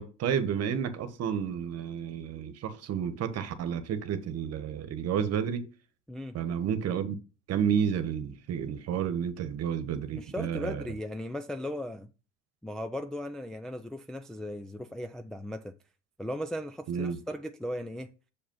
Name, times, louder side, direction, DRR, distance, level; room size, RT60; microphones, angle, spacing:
voice 1, 0.0-5.7 6.3-7.1 7.5-10.8 16.9-17.2, right 8 dB, 45° right, 1.3 m, -31 dB
voice 2, 10.1-12.1 12.6-15.7 16.2-18.1, left 1 dB, ahead, 0.4 m, -37 dB
6.7 x 5.1 x 5.5 m
hypercardioid pair, 80°, 36 cm